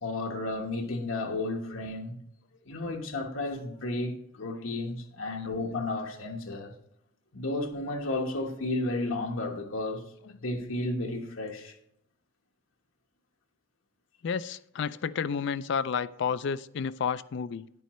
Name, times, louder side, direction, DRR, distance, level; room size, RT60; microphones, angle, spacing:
voice 1, 0.0-2.2 2.6-6.7 7.3-10.1 10.4-11.8, left 2 dB, 85° left, 1.2 m, -33 dB
voice 2, 14.2-17.7, left 6 dB, 60° left, 0.3 m, -31 dB
11.0 x 9.1 x 3.1 m
head